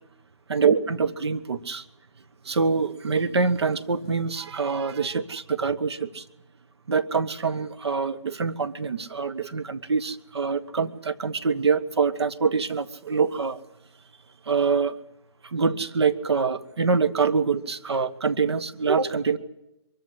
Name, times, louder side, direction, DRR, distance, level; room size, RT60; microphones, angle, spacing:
voice 1, 0.5-1.8 2.4-6.2 6.9-13.6 14.5-14.9 15.4-19.4, right 5 dB, 60° right, 12 dB, 1.2 m, -25 dB
23.0 x 14.0 x 9.8 m, 0.92 s
hypercardioid pair, 170°, 15 cm